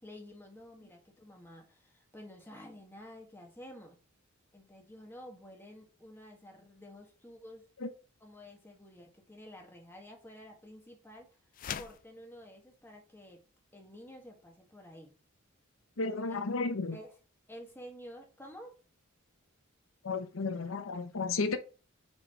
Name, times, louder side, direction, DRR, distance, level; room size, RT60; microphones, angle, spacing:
voice 1, 0.0-4.0 4.5-7.7 8.2-11.3 11.8-13.4 13.7-15.1 16.3-16.4 16.9-17.1 17.5-18.7, equal, 10° left, 1.6 m, -51 dB
sound 1, 11.5-12.1, left 9 dB, 40° left, 0.3 m, -39 dB
voice 2, 16.0-17.0 20.0-21.6, left 3 dB, 70° left, 0.8 m, -33 dB
4.8 x 4.3 x 5.5 m
head